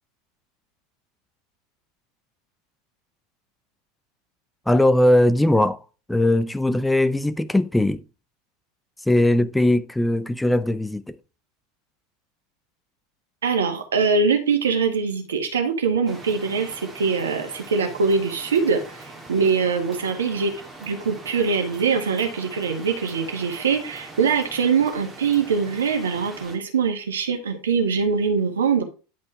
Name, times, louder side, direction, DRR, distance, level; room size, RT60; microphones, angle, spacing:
voice 1, 4.7-5.8 6.1-8.0 9.1-11.2, left 1 dB, 5° left, 0.5 m, -19 dB
voice 2, 13.4-28.8, right 5 dB, 70° right, 1.7 m, -23 dB
sound 1, 16.1-26.6, right 2 dB, 10° right, 2.3 m, -42 dB
10.0 x 5.3 x 3.5 m
figure-of-eight pair, 80°, 0 cm